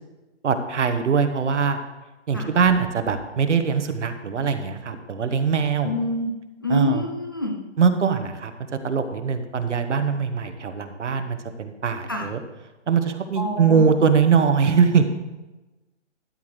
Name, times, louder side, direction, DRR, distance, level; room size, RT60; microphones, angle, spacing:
voice 1, 0.4-1.8 2.3-5.9 6.7-7.0 7.8-8.5 8.8-12.4 12.9-15.0, right 6 dB, 75° right, 8 dB, 1.2 m, -22 dB
voice 2, 5.8-6.3 6.6-7.6 12.1-12.3 13.4-13.9, left 1 dB, 20° left, 1 dB, 0.4 m, -26 dB
13.0 x 8.4 x 3.2 m, 1.1 s
hypercardioid pair, 155°, 36 cm